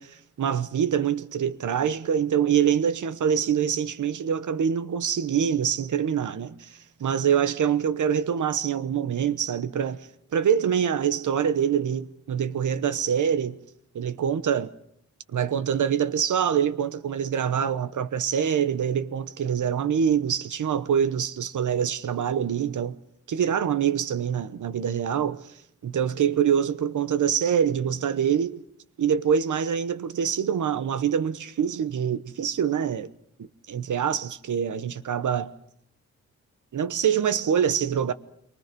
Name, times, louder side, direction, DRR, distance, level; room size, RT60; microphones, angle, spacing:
voice 1, 0.4-13.6 13.9-14.7 15.3-23.0 23.3-25.5 25.8-28.6 29.0-33.1 33.7-35.5 36.7-38.1, right 8 dB, 75° right, 1.1 m, -25 dB
27.0 x 23.5 x 5.3 m
wide cardioid pair, 110°, 31 cm